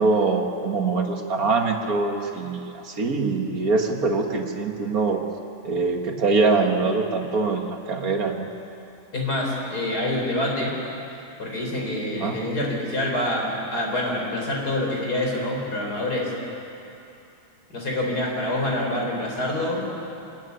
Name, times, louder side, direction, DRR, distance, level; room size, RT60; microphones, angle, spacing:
voice 1, 0.0-5.2 5.6-8.5 12.2-12.4, right 3 dB, 60° right, 3 dB, 2.1 m, -23 dB
voice 2, 9.1-10.8 11.4-16.3 17.7-20.0, left 1 dB, 75° left, -1 dB, 4.8 m, -26 dB
25.0 x 13.5 x 9.7 m, 2.7 s
omnidirectional pair, 1.7 m